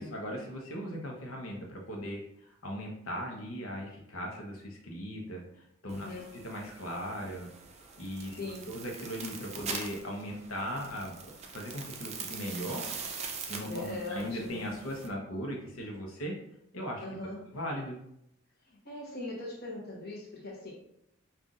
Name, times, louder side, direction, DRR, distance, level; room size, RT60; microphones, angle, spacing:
voice 1, 0.0-5.4 5.8-6.1 6.3-7.5 8.0-12.8 13.5-16.4 16.7-17.0 17.5-18.0, equal, 80° left, 0 dB, 0.9 m, -38 dB
voice 2, 5.9-6.4 8.4-8.7 13.6-14.7 17.0-17.5 18.7-20.7, left 2 dB, 50° left, -4 dB, 1.0 m, -41 dB
sound 1, 5.9-15.1, right 5 dB, 30° right, 0.4 m, -43 dB
5.5 x 2.5 x 2.5 m, 0.78 s
head